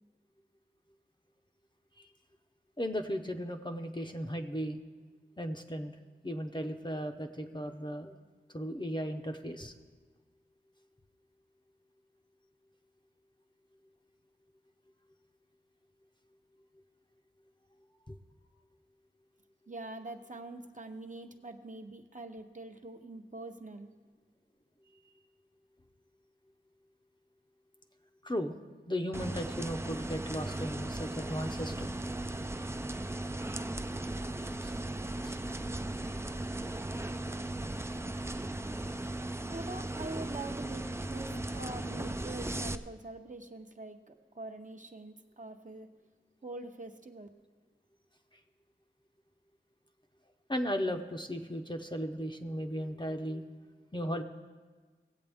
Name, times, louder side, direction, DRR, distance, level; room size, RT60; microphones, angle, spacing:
voice 1, 2.8-4.8 5.4-6.0 6.2-8.2 8.5-9.7 18.1-18.2 28.2-28.6 28.9-31.9 34.6-34.7 35.2-35.4 50.5-53.4 53.9-54.2, equal, 25° left, 5 dB, 0.7 m, -36 dB
voice 2, 19.7-23.9 39.5-45.9 46.4-47.3, right 2 dB, 40° right, 4 dB, 0.8 m, -44 dB
sound 1, 29.1-42.8, right 1 dB, 15° right, 0.4 m, -37 dB
18.0 x 7.9 x 3.5 m, 1.5 s
wide cardioid pair, 45°, 20 cm